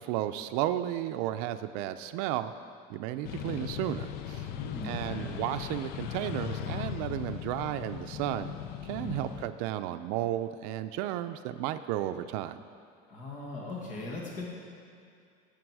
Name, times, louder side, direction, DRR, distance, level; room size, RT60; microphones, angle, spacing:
voice 1, 0.0-2.5 2.9-4.5 4.8-8.5 8.8-12.6, right 13 dB, 85° right, 10 dB, 0.5 m, -33 dB
sound 1, 3.2-9.5, left 9 dB, 55° left, 0.5 m, -38 dB
voice 2, 4.5-5.3 8.9-9.2 13.1-14.5, left 2 dB, 40° left, -3 dB, 1.7 m, -39 dB
15.0 x 7.3 x 4.7 m, 2.4 s
cardioid pair, 170°, 19 cm